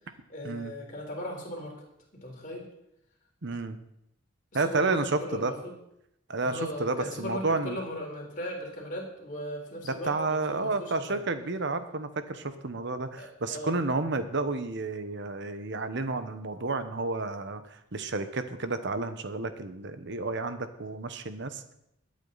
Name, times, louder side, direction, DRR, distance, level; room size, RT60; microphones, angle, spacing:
voice 1, 0.3-1.8 2.1-2.7 4.5-5.7 6.4-11.2 13.2-13.8 14.1-14.2, equal, 40° left, -1 dB, 4.0 m, -38 dB
voice 2, 3.4-3.8 4.5-5.5 6.3-7.8 10.0-21.7, right 3 dB, 60° right, 10 dB, 1.1 m, -31 dB
21.5 x 8.9 x 4.1 m, 0.79 s
head